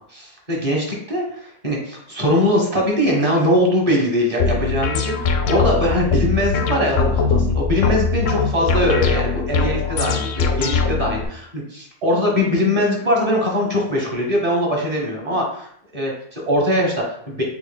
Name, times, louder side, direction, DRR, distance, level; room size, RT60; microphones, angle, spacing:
voice 1, 0.1-15.7 15.9-17.4, left 1 dB, 25° right, -2 dB, 1.2 m, -21 dB
sound 1, 4.4-11.2, left 4 dB, 65° left, 0.8 m, -21 dB
7.0 x 3.0 x 2.2 m, 0.66 s
omnidirectional pair, 1.6 m